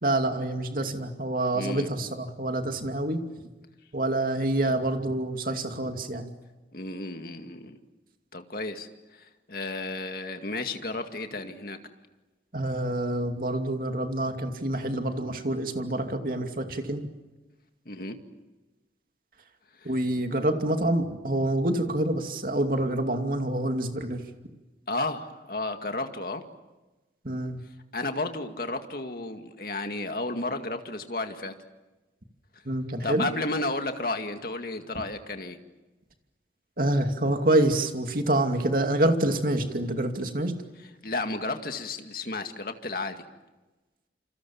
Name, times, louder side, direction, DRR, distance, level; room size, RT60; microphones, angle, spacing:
voice 1, 0.0-3.5 3.9-6.3 12.5-17.1 19.8-24.2 27.2-27.6 32.6-33.3 36.8-40.6, right 1 dB, 50° right, 5 dB, 2.6 m, -27 dB
voice 2, 1.5-1.9 6.7-7.8 8.3-11.8 17.9-18.2 19.8-19.9 24.9-26.4 27.9-31.5 33.0-35.6 41.0-43.2, left 2 dB, 55° left, 6 dB, 2.1 m, -33 dB
28.0 x 27.5 x 7.3 m, 1.1 s
head